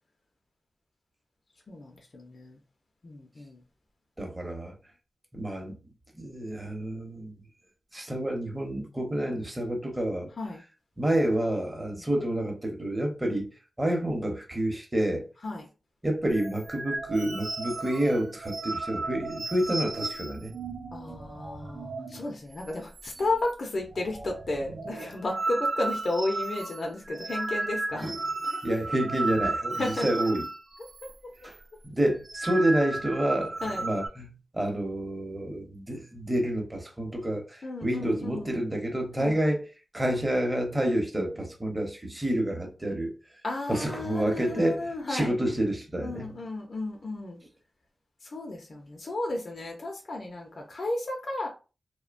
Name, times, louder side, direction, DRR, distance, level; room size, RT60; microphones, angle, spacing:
voice 1, 1.7-2.6 3.0-3.6 10.4-10.6 11.9-12.0 15.4-15.7 20.9-28.1 28.5-28.6 29.8-30.1 31.0-31.1 33.6-33.9 37.6-38.6 39.2-39.4 43.4-45.3 46.0-47.4 48.2-51.5, left 2 dB, 60° left, 0.5 m, -33 dB
voice 2, 4.2-4.7 5.3-5.8 6.2-7.3 7.9-10.3 11.0-13.5 13.8-15.3 16.0-20.5 28.0-28.2 28.6-30.5 31.4-31.6 31.8-39.7 39.9-43.1 43.7-46.4, right 1 dB, 20° right, 0.8 m, -29 dB
sound 1, 16.3-22.2 22.5-22.7 22.9-23.5 23.8-31.1 31.4-31.6 32.1-34.1, right 3 dB, 85° right, 0.5 m, -34 dB
2.7 x 2.1 x 2.5 m
cardioid pair, 60°, 0 cm